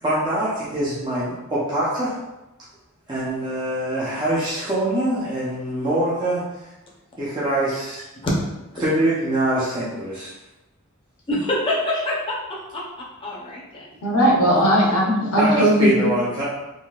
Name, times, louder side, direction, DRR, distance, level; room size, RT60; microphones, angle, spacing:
voice 1, 0.0-2.1 3.1-6.7 7.2-8.0 8.8-10.3 14.5-14.6 15.4-16.4, right 1 dB, 20° right, -9 dB, 0.6 m, -24 dB
voice 2, 11.3-12.8 13.2-13.8, left 1 dB, 25° left, -4 dB, 0.6 m, -25 dB
voice 3, 14.0-16.1, equal, 85° left, -2 dB, 0.8 m, -18 dB
3.6 x 2.5 x 2.4 m, 0.97 s
head